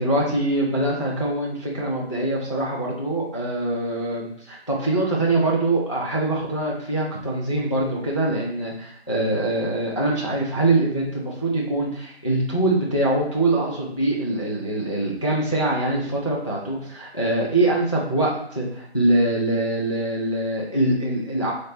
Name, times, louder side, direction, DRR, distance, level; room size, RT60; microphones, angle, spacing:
voice 1, 0.0-21.5, right 2 dB, 30° left, -3 dB, 0.5 m, -23 dB
3.9 x 3.3 x 4.0 m, 0.68 s
figure-of-eight pair, 160°, 32 cm